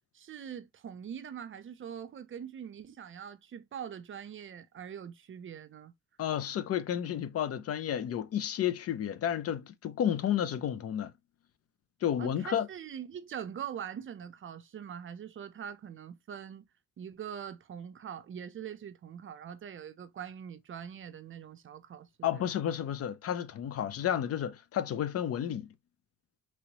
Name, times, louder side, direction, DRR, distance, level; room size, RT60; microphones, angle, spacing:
voice 1, 0.1-5.9 12.2-16.6 17.0-22.5, right 8 dB, 45° right, 0.5 m, -43 dB
voice 2, 6.2-11.1 12.0-12.7 22.2-25.7, left 10 dB, 50° left, 0.5 m, -31 dB
3.0 x 2.9 x 2.8 m
cardioid pair, 90°, 30 cm